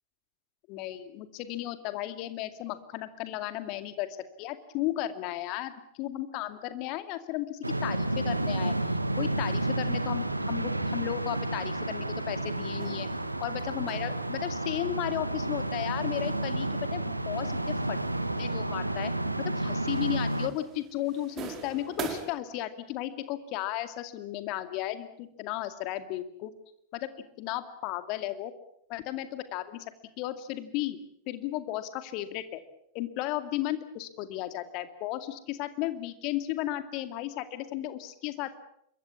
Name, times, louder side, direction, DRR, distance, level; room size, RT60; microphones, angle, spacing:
voice 1, 0.7-4.1 4.4-8.7 9.2-13.1 13.4-18.0 18.4-19.1 19.4-26.5 26.9-27.1 27.4-28.5 28.9-29.9 30.2-31.0 31.3-32.6 32.9-38.5, left 14 dB, 40° left, 10 dB, 2.3 m, -34 dB
sound 1, 7.6-20.5, right 1 dB, 85° right, 1.4 m, -31 dB
sound 2, 12.8-22.2, right 7 dB, 30° right, 4.4 m, -46 dB
26.5 x 23.0 x 7.1 m, 0.72 s
figure-of-eight pair, 90°, 0 cm